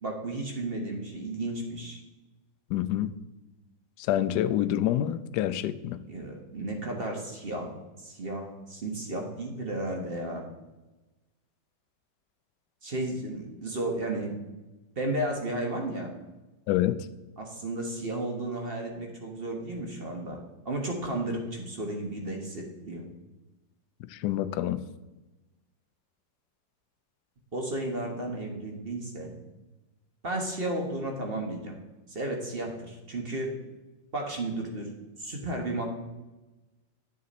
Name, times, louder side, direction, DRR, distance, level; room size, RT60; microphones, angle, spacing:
voice 1, 0.0-2.0 6.1-7.7 8.0-10.5 12.8-14.3 15.0-16.1 17.4-20.4 20.6-23.1 27.5-29.3 30.2-31.7 32.1-33.5 34.1-34.9 35.2-35.8, right 1 dB, 35° right, 2 dB, 1.3 m, -33 dB
voice 2, 2.7-3.1 4.1-6.0 16.7-17.0 24.1-24.8, left 12 dB, 75° left, 13 dB, 1.0 m, -27 dB
9.4 x 6.6 x 4.2 m, 1.1 s
omnidirectional pair, 2.0 m